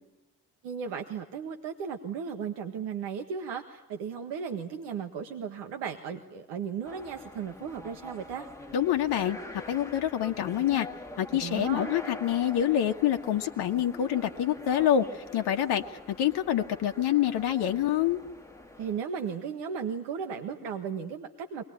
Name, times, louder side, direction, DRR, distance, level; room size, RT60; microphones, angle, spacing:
voice 1, 0.6-8.5 11.3-12.0 18.8-21.6, right 7 dB, 60° right, 5 dB, 1.7 m, -35 dB
sound 1, 6.8-19.0, left 2 dB, 5° left, 2.1 m, -45 dB
voice 2, 8.7-10.9 11.2-18.2, left 10 dB, 55° left, 5 dB, 1.4 m, -27 dB
23.0 x 19.5 x 9.9 m, 1.0 s
figure-of-eight pair, 50°, 47 cm